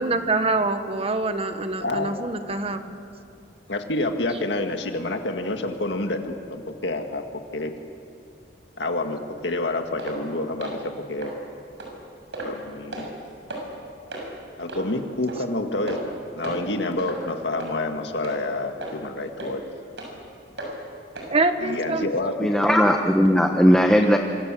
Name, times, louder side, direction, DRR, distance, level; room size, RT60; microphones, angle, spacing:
voice 1, 0.0-2.9 21.3-22.1, right 3 dB, 35° right, 8 dB, 1.5 m, -25 dB
voice 2, 3.7-7.2 7.5-7.7 8.8-10.8 11.1-11.3 12.4-13.1 14.6-19.6 21.6-22.5, left 2 dB, 80° left, 5 dB, 2.0 m, -28 dB
sound 1, 10.0-10.2 10.6-10.8 11.2-11.3 11.8-11.9 12.3-12.6 12.9-13.1 13.5-13.6 14.1-14.3 14.7-14.8 15.3-15.4 15.9-16.1 16.4-16.7 17.0-17.2 17.6-17.7 18.2-18.4 18.8-19.0 19.4-19.5 20.0-20.1 20.6-20.7 21.2-21.3 21.7-21.8, right 1 dB, 80° right, 6.8 m, -34 dB
voice 3, 22.4-24.2, equal, 5° left, 2 dB, 1.1 m, -17 dB
27.0 x 25.0 x 7.6 m, 2.5 s
head